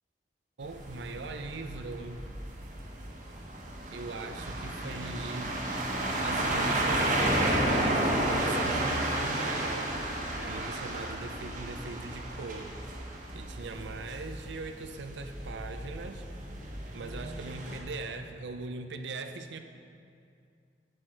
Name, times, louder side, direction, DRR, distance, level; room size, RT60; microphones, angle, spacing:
sound 1, 0.6-17.8, right 1 dB, 50° right, 1.3 m, -32 dB
voice 1, 0.6-2.2 3.9-5.6 6.2-9.9 10.4-12.7 13.3-16.3 16.6-19.6, right 3 dB, 90° right, 7 dB, 0.6 m, -40 dB
8.1 x 7.7 x 4.6 m, 2.4 s
head